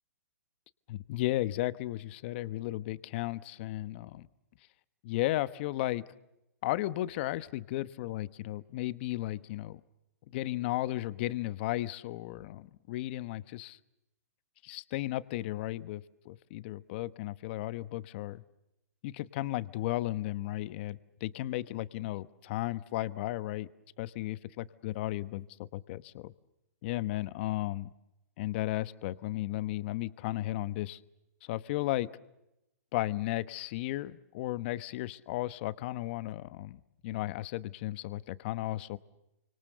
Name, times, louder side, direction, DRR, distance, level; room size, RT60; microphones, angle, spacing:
voice 1, 0.9-4.3 5.0-6.0 6.6-9.8 10.3-13.8 14.6-18.4 19.0-23.7 24.0-26.3 26.8-27.9 28.4-31.0 31.4-32.1 32.9-39.0, left 16 dB, 40° left, 15 dB, 1.1 m, -34 dB
29.0 x 25.5 x 6.8 m, 0.89 s
hypercardioid pair, 150°, 9 cm